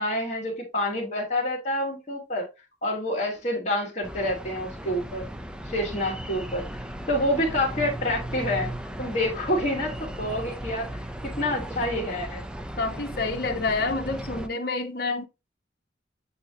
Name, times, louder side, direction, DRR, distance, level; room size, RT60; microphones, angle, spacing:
voice 1, 0.0-2.5 2.8-5.3 5.6-6.7 7.1-8.7 9.0-12.4, left 1 dB, 40° left, 2.1 m, -28 dB
sound 1, 4.0-14.5, right 1 dB, 5° right, 0.5 m, -36 dB
voice 2, 12.8-15.2, left 3 dB, 55° left, 1.1 m, -28 dB
8.7 x 2.9 x 3.7 m
head